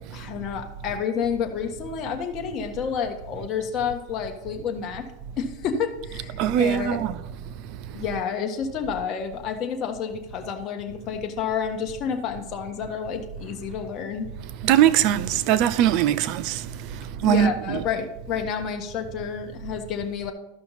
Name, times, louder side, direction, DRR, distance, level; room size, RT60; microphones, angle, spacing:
voice 1, 0.1-5.0 5.4-7.1 7.9-14.3 17.2-20.3, left 7 dB, 40° left, 1.4 m, -29 dB
voice 2, 6.4-7.2 14.6-17.8, right 11 dB, 50° right, 0.5 m, -21 dB
13.5 x 5.7 x 4.1 m
supercardioid pair, 140°, 0 cm